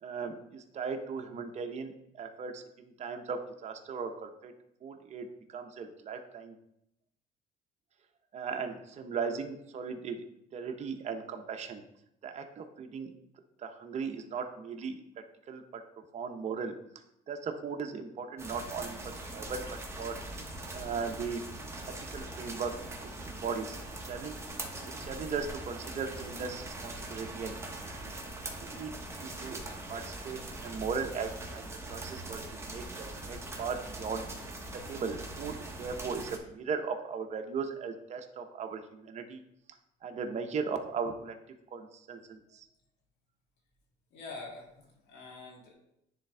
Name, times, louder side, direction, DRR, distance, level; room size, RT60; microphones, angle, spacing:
voice 1, 0.0-4.5 4.8-6.5 8.3-10.2 10.5-11.8 12.2-13.1 13.6-15.0 15.5-16.7 17.3-19.0 19.3-20.2 20.7-21.4 22.1-22.7 23.0-23.8 24.0-24.4 25.0-27.8 28.0-28.1 28.6-28.9 29.2-34.2 34.7-39.4 40.0-41.4 41.7-42.7, right 5 dB, 40° right, 5 dB, 0.7 m, -38 dB
sound 1, 18.4-36.4, right 2 dB, 15° right, 1.0 m, -42 dB
voice 2, 44.1-45.7, left 3 dB, 80° left, -2 dB, 2.2 m, -46 dB
10.0 x 3.4 x 3.3 m, 0.79 s
cardioid pair, 110°, 17 cm